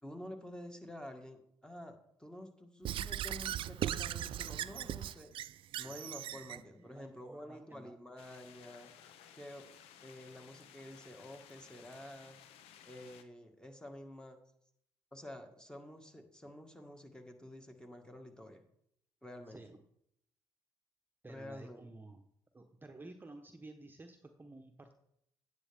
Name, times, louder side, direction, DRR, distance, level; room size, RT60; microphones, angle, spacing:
voice 1, 0.0-5.3 5.8-8.9 9.4-9.7 10.0-12.4 12.8-14.4 15.1-18.6 19.2-19.6 21.3-21.9, left 1 dB, 10° left, 4 dB, 1.7 m, -49 dB
Squeak / Writing, 2.8-6.6, right 11 dB, 65° right, 0.3 m, -38 dB
voice 2, 6.5-8.0 19.5-19.8 21.2-22.2 22.5-24.9, right 2 dB, 20° right, 5 dB, 0.9 m, -53 dB
sound 1, 8.2-13.2, left 9 dB, 80° left, 0.7 m, -58 dB
9.4 x 8.2 x 3.5 m, 0.72 s
supercardioid pair, 60°, 10 cm